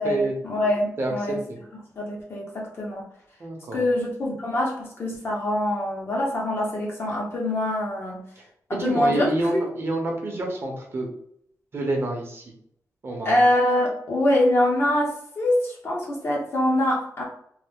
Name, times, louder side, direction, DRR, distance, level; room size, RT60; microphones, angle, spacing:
voice 1, 0.0-1.4 2.0-3.1 3.7-8.2 8.7-9.3 9.5-9.6 13.2-17.2, left 1 dB, 40° left, -2 dB, 0.9 m, -24 dB
voice 2, 1.0-1.6 3.4-3.8 8.7-11.1 11.7-12.4 13.0-13.4, right 2 dB, 45° right, 0 dB, 0.8 m, -28 dB
3.2 x 2.1 x 3.5 m, 0.68 s
wide cardioid pair, 165°, 6 cm